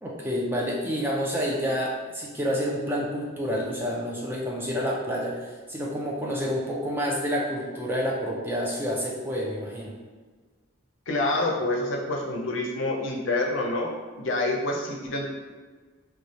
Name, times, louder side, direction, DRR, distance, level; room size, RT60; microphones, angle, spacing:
voice 1, 0.0-9.9, equal, 10° right, -3 dB, 0.4 m, -29 dB
voice 2, 11.1-15.3, left 2 dB, 65° left, 0 dB, 0.6 m, -27 dB
3.2 x 2.2 x 4.0 m, 1.4 s
head